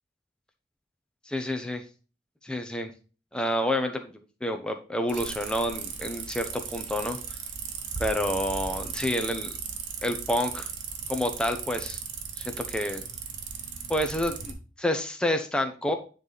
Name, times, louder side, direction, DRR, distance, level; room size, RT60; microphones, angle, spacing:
voice 1, 1.3-1.8 2.4-2.9 3.3-7.2 8.0-9.5 10.0-10.7 11.1-12.0 12.4-13.0 13.9-16.0, left 1 dB, 5° left, 5 dB, 0.7 m, -29 dB
sound 1, 5.1-14.5, right 6 dB, 75° right, 1.1 m, -36 dB
9.9 x 3.3 x 4.0 m, 0.36 s
head